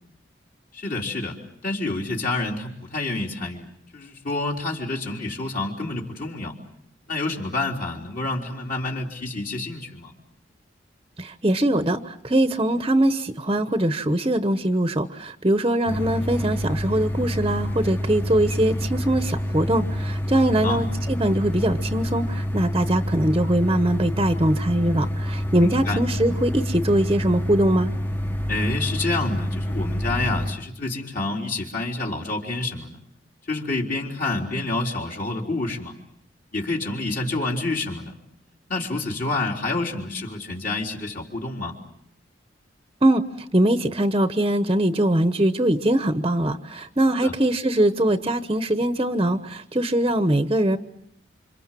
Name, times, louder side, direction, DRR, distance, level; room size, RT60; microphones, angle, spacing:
voice 1, 0.7-6.6 7.1-10.1 20.5-20.8 25.6-26.0 28.5-33.0 33.5-35.9 36.5-38.1 38.7-41.8 47.2-47.3, left 2 dB, 50° left, -1 dB, 3.8 m, -28 dB
voice 2, 11.2-27.9 43.0-43.2 43.5-50.8, right 1 dB, 25° right, 9 dB, 1.0 m, -22 dB
sound 1, 15.9-30.5, equal, 10° left, 1.0 m, -27 dB
28.5 x 27.0 x 7.6 m, 0.71 s
head